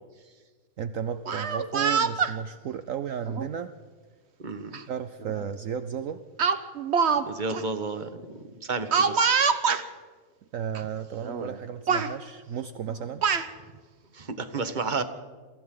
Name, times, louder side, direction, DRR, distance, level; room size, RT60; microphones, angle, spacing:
voice 1, 0.8-3.7 4.9-6.2 10.5-13.2, right 8 dB, 65° right, 10 dB, 1.1 m, -33 dB
Speech, 1.1-2.3 3.3-3.5 4.7-4.8 5.2-5.4 6.4-7.2 7.5-7.6 8.9-9.8 10.7-10.8 11.2-11.6 11.9-12.1 12.9-13.5, right 6 dB, 50° right, 1.3 m, -25 dB
voice 2, 4.4-4.8 7.2-9.3 14.1-15.0, right 4 dB, 30° right, 9 dB, 1.4 m, -32 dB
28.5 x 24.0 x 3.9 m, 1.5 s
omnidirectional pair, 1.6 m